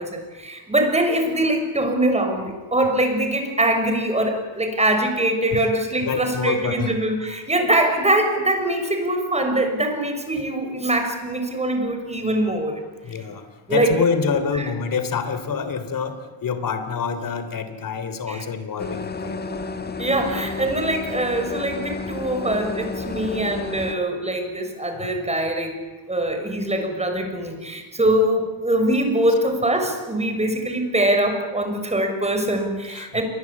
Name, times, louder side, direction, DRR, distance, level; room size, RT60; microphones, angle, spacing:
voice 1, 0.0-12.8 13.7-14.0 14.6-14.7 18.3-18.4 20.0-25.8 26.1-33.2, right 1 dB, 15° right, 5 dB, 6.2 m, -23 dB
voice 2, 6.0-7.1 13.0-19.4 32.9-33.2, left 6 dB, 45° left, 11 dB, 3.4 m, -26 dB
sound 1, 18.8-24.0, left 4 dB, 20° left, 1.6 m, -31 dB
28.5 x 23.5 x 8.6 m, 1.3 s
cardioid pair, 125°, 46 cm